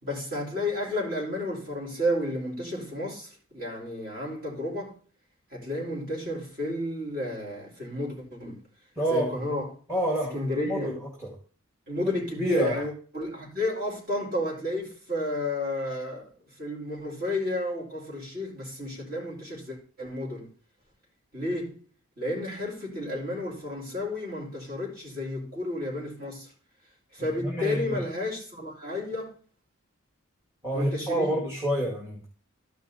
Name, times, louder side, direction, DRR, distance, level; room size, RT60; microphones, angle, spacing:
voice 1, 0.0-5.0 5.5-8.6 9.1-9.7 10.3-10.9 11.9-16.3 16.6-20.5 21.3-21.8 22.2-26.5 27.1-29.4 30.7-31.4, left 1 dB, 40° right, 4.4 m, -32 dB
voice 2, 9.0-9.4 9.9-11.3 12.4-12.8 27.4-28.0 30.6-32.3, right 1 dB, 15° right, 2.1 m, -28 dB
13.0 x 5.5 x 4.1 m
head